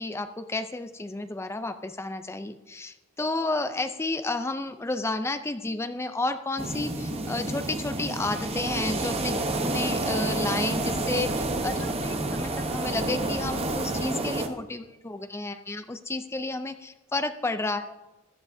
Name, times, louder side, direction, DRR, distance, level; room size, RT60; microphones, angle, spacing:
voice 1, 0.0-17.9, left 2 dB, 15° left, 10 dB, 0.4 m, -31 dB
sound 1, 6.6-14.5, right 2 dB, 30° right, 0.9 m, -29 dB
sound 2, 8.4-14.0, equal, 65° right, 3.6 m, -45 dB
15.0 x 11.5 x 2.7 m, 1.1 s
head